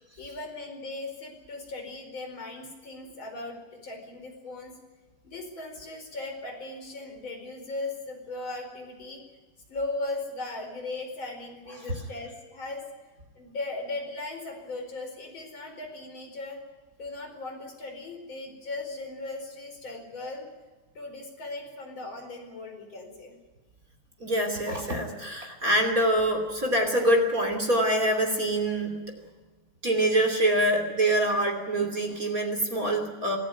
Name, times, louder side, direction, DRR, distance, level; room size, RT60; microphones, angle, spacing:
voice 1, 0.2-4.7 5.2-9.2 9.7-12.8 13.3-16.6 17.0-20.5 20.9-23.3, left 2 dB, 25° left, 3 dB, 4.9 m, -38 dB
voice 2, 24.2-29.1 29.8-33.4, right 1 dB, 25° right, 3 dB, 2.2 m, -25 dB
26.0 x 15.0 x 9.3 m, 1.3 s
omnidirectional pair, 5.5 m